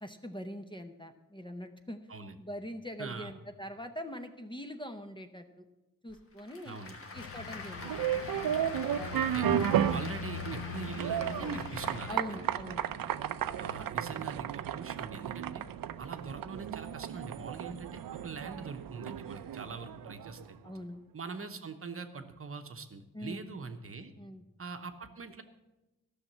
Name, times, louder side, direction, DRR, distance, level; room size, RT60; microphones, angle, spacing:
voice 1, 0.0-2.0 2.4-5.6 6.0-6.8 7.1-8.2 8.4-9.2 9.7-10.1 12.1-13.1 13.4-13.7 20.6-21.0 23.1-23.5 24.2-24.4, equal, 15° left, 7 dB, 0.7 m, -43 dB
voice 2, 3.0-3.3 6.7-7.0 9.1-9.5 9.9-12.4 13.6-15.7 16.0-20.6 21.1-24.1 24.6-25.4, right 4 dB, 40° right, 7 dB, 0.9 m, -43 dB
Applause / Crowd, 6.1-12.9, left 3 dB, 40° left, 1.4 m, -45 dB
sound 1, 7.1-12.1, left 12 dB, 80° left, 0.5 m, -43 dB
sound 2, 7.8-20.5, right 10 dB, 85° right, 0.5 m, -34 dB
13.0 x 6.5 x 7.4 m, 1.0 s
wide cardioid pair, 125°, 33 cm